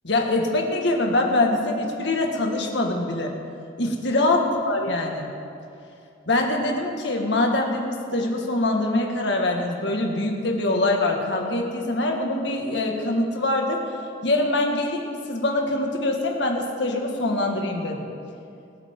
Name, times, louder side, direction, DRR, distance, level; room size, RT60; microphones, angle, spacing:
voice 1, 0.0-3.3 3.8-5.3 6.3-13.8 14.2-18.1, left 2 dB, 65° left, 1 dB, 1.9 m, -24 dB
24.0 x 9.0 x 3.8 m, 2.6 s
head